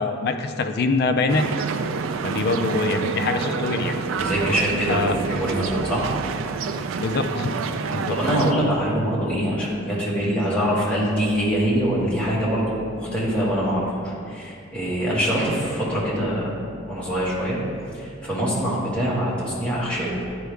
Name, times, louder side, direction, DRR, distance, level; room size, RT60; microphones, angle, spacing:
voice 1, 0.0-1.5 2.2-4.0 4.9-5.1 7.0-7.5 7.9-8.2, left 3 dB, 50° left, 6 dB, 0.4 m, -24 dB
sound 1, 1.3-8.5, right 5 dB, 75° right, 0.4 m, -28 dB
voice 2, 4.2-6.1 8.1-16.6 16.9-17.6 17.9-20.1, equal, 5° left, -8 dB, 1.7 m, -24 dB
10.5 x 4.7 x 3.4 m, 2.5 s
head